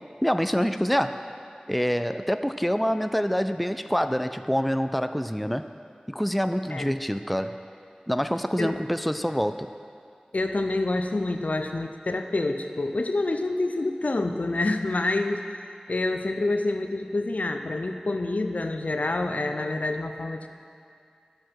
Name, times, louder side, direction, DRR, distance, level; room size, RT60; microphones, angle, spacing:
voice 1, 0.2-1.2 1.7-5.7 6.1-7.6 8.1-9.7, equal, ahead, 9 dB, 0.3 m, -26 dB
voice 2, 10.3-20.5, left 2 dB, 75° left, 6 dB, 0.5 m, -27 dB
10.5 x 7.7 x 4.5 m, 2.4 s
wide cardioid pair, 50°, 3 cm